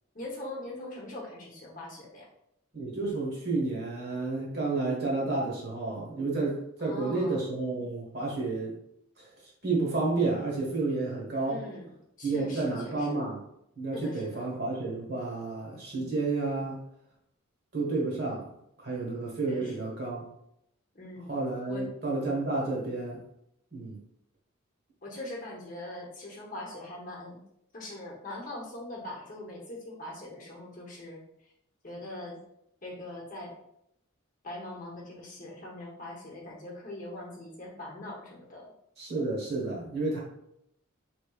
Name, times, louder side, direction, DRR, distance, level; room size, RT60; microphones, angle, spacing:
voice 1, 0.1-2.3 6.8-7.5 11.5-11.9 12.2-13.1 13.9-14.5 19.5-19.8 20.9-21.3 21.7-21.9 25.0-27.4 27.7-31.2 31.8-32.4 32.8-33.5 34.4-38.7, left 1 dB, 35° left, -3 dB, 0.8 m, -41 dB
voice 2, 2.7-8.8 9.2-9.3 9.6-11.6 12.2-13.4 13.8-16.8 17.7-18.5 18.8-20.3 21.3-23.2 23.7-24.0 39.0-40.2, right 3 dB, 50° right, -2 dB, 1.2 m, -31 dB
4.1 x 3.2 x 2.3 m, 0.77 s
head